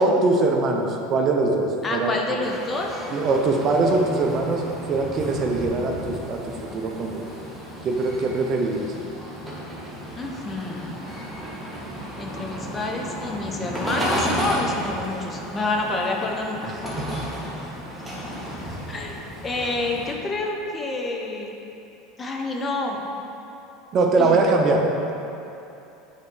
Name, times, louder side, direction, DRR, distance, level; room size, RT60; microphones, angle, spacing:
voice 1, 0.0-2.2 3.1-7.2 7.8-8.9 17.0-17.1 23.9-24.9, right 3 dB, 40° right, 2 dB, 0.7 m, -22 dB
voice 2, 1.8-3.1 10.2-11.0 12.2-16.7 18.9-21.5 22.2-23.1 24.2-24.4, left 2 dB, 25° left, 0 dB, 0.9 m, -28 dB
sound 1, 2.4-20.1, equal, 5° right, 1.5 m, -33 dB
8.5 x 4.4 x 3.8 m, 2.8 s
supercardioid pair, 110°, 0 cm